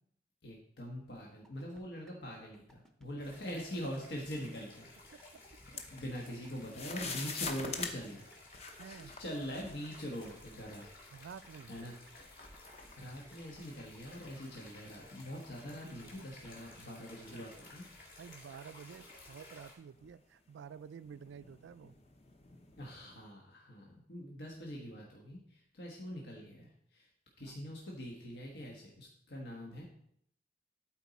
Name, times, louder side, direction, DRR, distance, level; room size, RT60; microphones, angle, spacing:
voice 1, 0.4-5.2 5.9-8.3 8.8-10.9 11.7-11.9 12.9-18.2 22.8-27.1 27.4-29.8, equal, 75° left, -2 dB, 1.3 m, -44 dB
sound 1, 1.4-2.1 2.5-3.1 3.3-3.4 3.8-4.3 4.6-4.7 5.0-5.6 5.8-5.9 6.3-6.8 7.1-7.2 7.5-8.1 8.3-8.4 8.8-9.3 9.6-9.7 10.0-10.9 11.3-12.1 12.5-13.1 13.3-13.4 13.8-14.3 14.6-14.7 15.0-15.5 15.8-15.9 16.3-16.8 17.1-17.2 17.5-18.0 18.3-18.4 18.8-19.3 19.6-19.7 20.0-20.1, right 1 dB, ahead, 0.6 m, -64 dB
sound 2, 3.2-19.7, left 2 dB, 50° left, 2.3 m, -56 dB
sound 3, 5.4-6.3 6.6-10.0 10.9-11.0 11.6-14.1 14.5-14.6 15.2-15.5 16.0-18.1 18.7-18.8 19.8-23.2, left 4 dB, 35° left, 0.8 m, -46 dB
voice 2, 8.8-9.1 11.1-11.7 15.6-16.3 17.3-17.5 18.2-22.0 27.4-27.6, right 7 dB, 90° right, 16 dB, 0.3 m, -51 dB
12.5 x 4.5 x 4.1 m, 0.70 s
head